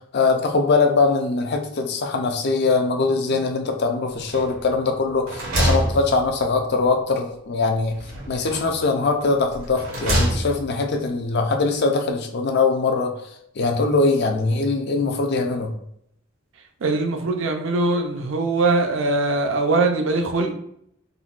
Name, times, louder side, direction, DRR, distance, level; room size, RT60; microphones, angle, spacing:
voice 1, 0.1-8.0 8.3-13.1 13.6-15.7, left 3 dB, 55° left, 4 dB, 0.4 m, -22 dB
sound 1, 4.3-4.8 5.1-6.7 8.0-8.8 9.5-10.8, right 1 dB, 85° right, 1.0 m, -25 dB
voice 2, 16.8-20.5, right 3 dB, 65° right, 3 dB, 0.5 m, -21 dB
3.8 x 2.2 x 2.4 m, 0.72 s
head